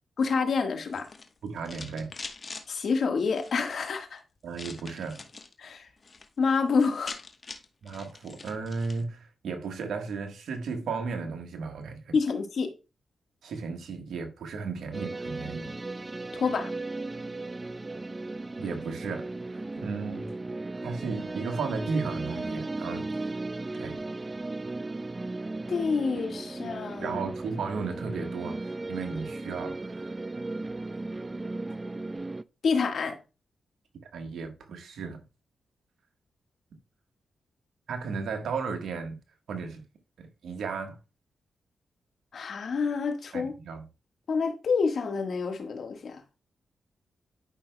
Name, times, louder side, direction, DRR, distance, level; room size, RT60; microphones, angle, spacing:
voice 1, 0.2-1.1 2.7-4.2 5.6-5.9 6.4-7.2 12.1-12.7 16.3-16.7 25.7-27.2 32.6-33.2 42.3-43.5 44.3-46.2, left 5 dB, 70° left, 1.5 m, -28 dB
sound 1, 0.9-2.7 3.3-3.8 4.5-5.5 5.9-6.3 6.6-6.7 6.8-9.0, left 4 dB, 45° left, 1.1 m, -43 dB
voice 2, 1.4-2.1 4.4-5.2 7.8-12.2 13.4-15.7 18.6-20.3 20.8-23.3 23.7-24.0 27.0-30.1 34.1-35.2 37.9-39.2 39.5-39.8 40.2-41.0 43.3-43.9, right 4 dB, 80° right, 1.3 m, -35 dB
sound 2, 14.9-32.4, right 2 dB, 30° right, 0.3 m, -36 dB
11.5 x 5.6 x 2.2 m
supercardioid pair, 50°, 0 cm